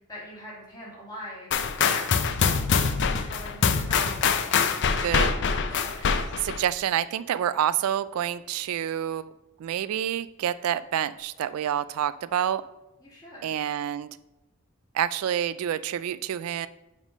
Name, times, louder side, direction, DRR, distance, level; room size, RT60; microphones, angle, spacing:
voice 1, 0.1-2.5 3.0-6.3 13.0-13.6, equal, 20° left, -6 dB, 2.6 m, -43 dB
sound 1, 1.5-6.6, left 6 dB, 55° left, 0.5 m, -24 dB
voice 2, 5.0-5.3 6.1-9.3 9.6-12.6 13.4-14.1 14.9-16.7, right 10 dB, 80° right, 16 dB, 0.3 m, -28 dB
7.2 x 3.6 x 5.2 m, 0.98 s
head